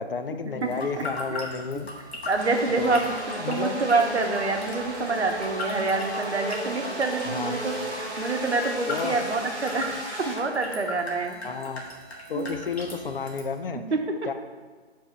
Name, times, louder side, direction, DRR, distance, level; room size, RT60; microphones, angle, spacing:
voice 1, 0.0-1.9 2.8-3.0 3.4-3.8 7.3-7.6 8.9-9.2 11.4-11.8 12.3-13.8 14.3-14.4, left 5 dB, 55° left, 8 dB, 0.5 m, -31 dB
sound 1, 0.6-13.6, left 2 dB, 70° left, 1.5 m, -40 dB
sound 2, 0.6-13.4, right 4 dB, 60° right, 1.4 m, -53 dB
voice 2, 0.6-1.0 1.3-1.5 2.3-9.9 10.2-11.4 12.3-12.6 13.9-14.0, right 3 dB, 75° right, 5 dB, 0.9 m, -27 dB
sound 3, 2.4-10.4, equal, 10° right, 0.5 m, -35 dB
5.4 x 3.5 x 5.8 m, 1.4 s
figure-of-eight pair, 150°, 34 cm